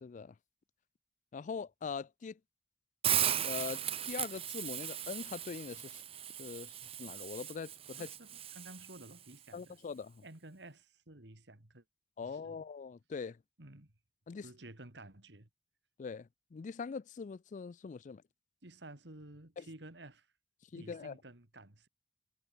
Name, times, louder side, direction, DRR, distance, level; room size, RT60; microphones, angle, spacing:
voice 1, 0.0-0.3 1.3-2.4 3.4-6.0 6.4-8.1 9.5-10.2 12.2-13.4 14.3-14.5 16.0-18.2 19.6-19.7 20.7-21.1, left 5 dB, 45° left, 0.4 m, -42 dB
Hiss, 3.0-9.1, right 10 dB, 35° right, 0.7 m, -37 dB
voice 2, 8.0-9.8 10.2-11.8 12.2-12.6 13.6-13.9 14.4-15.5 18.6-20.3 20.7-21.9, right 2 dB, 70° right, 2.7 m, -53 dB
head